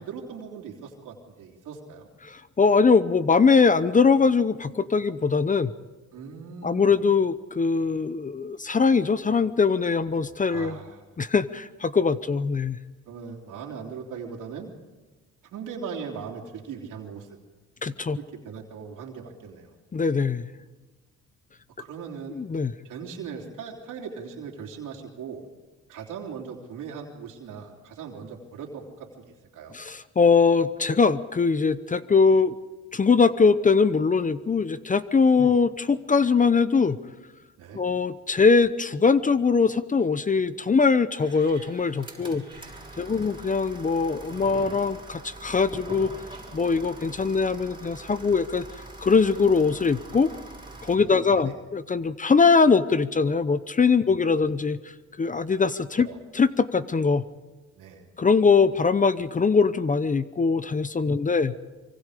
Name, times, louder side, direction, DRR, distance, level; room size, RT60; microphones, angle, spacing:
voice 1, 0.0-2.1 6.1-6.9 10.5-11.0 13.1-14.7 15.4-17.4 18.1-19.7 21.8-22.4 22.8-25.5 25.9-29.7 35.4-35.5 37.6-37.8 42.2-42.7 43.0-43.4 50.9-51.5 56.0-56.2 57.8-58.0 61.0-61.5, right 6 dB, 85° right, 0 dB, 3.2 m, -39 dB
voice 2, 2.2-5.7 6.6-10.8 11.2-12.8 17.8-18.2 19.9-20.4 22.3-22.7 29.7-32.6 32.9-37.0 37.7-42.4 43.0-46.1 46.5-48.7 49.0-50.3 50.8-54.8 55.2-57.2 58.2-61.5, left 5 dB, 25° left, 14 dB, 0.8 m, -22 dB
sound 1, 41.2-51.0, right 2 dB, 15° right, 5.3 m, -43 dB
25.0 x 24.0 x 5.0 m, 1.2 s
cardioid pair, 90°, 30 cm